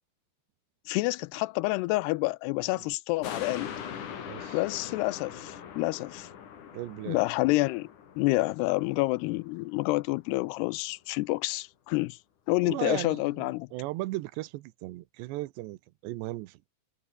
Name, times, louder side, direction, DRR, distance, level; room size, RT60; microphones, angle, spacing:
voice 1, 0.9-3.7 4.5-6.3 7.1-7.9 8.2-12.2 12.5-13.7, left 22 dB, 80° left, 2.5 m, -28 dB
sound 1, 3.2-9.9 10.3-10.4, left 8 dB, 50° left, 3.6 m, -42 dB
voice 2, 4.3-4.6 6.7-7.2 12.6-16.7, right 18 dB, 85° right, 3.1 m, -37 dB
omnidirectional pair, 5.0 m